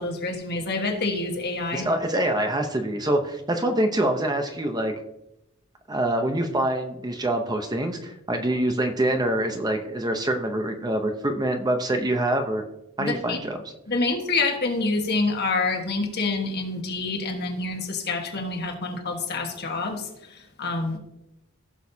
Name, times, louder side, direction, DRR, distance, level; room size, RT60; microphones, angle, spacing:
voice 1, 0.0-1.9 13.0-13.4 13.9-21.0, left 3 dB, 50° left, 4 dB, 1.4 m, -27 dB
voice 2, 1.7-4.9 5.9-12.6 13.0-13.6, right 1 dB, 20° right, 5 dB, 0.8 m, -25 dB
15.5 x 6.4 x 2.8 m, 0.86 s
head